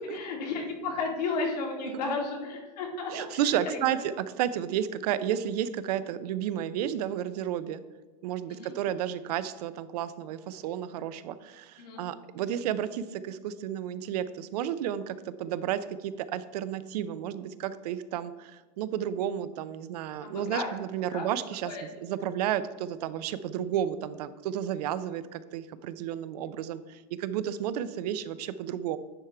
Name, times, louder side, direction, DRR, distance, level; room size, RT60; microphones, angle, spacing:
voice 1, 0.1-4.0 8.5-8.7 11.8-12.0 20.2-20.7 21.1-21.3 21.6-21.8, left 4 dB, 80° left, 0 dB, 2.3 m, -33 dB
voice 2, 3.1-7.8 8.2-21.7 22.0-29.0, right 10 dB, 75° right, 14 dB, 0.5 m, -32 dB
9.8 x 3.7 x 4.4 m, 1.3 s
supercardioid pair, 145°, 21 cm